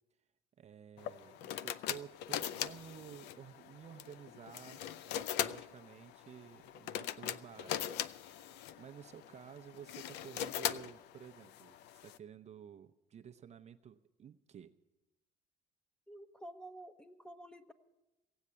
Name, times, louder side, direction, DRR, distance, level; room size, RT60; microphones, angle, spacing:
voice 1, 0.6-14.7, right 8 dB, 40° right, 7 dB, 0.6 m, -53 dB
sound 1, 1.0-12.2, left 11 dB, 85° left, 0.5 m, -41 dB
voice 2, 16.1-17.7, right 1 dB, 5° left, 8 dB, 1.0 m, -50 dB
16.5 x 8.1 x 8.6 m, 1.0 s
cardioid pair, 110°, 17 cm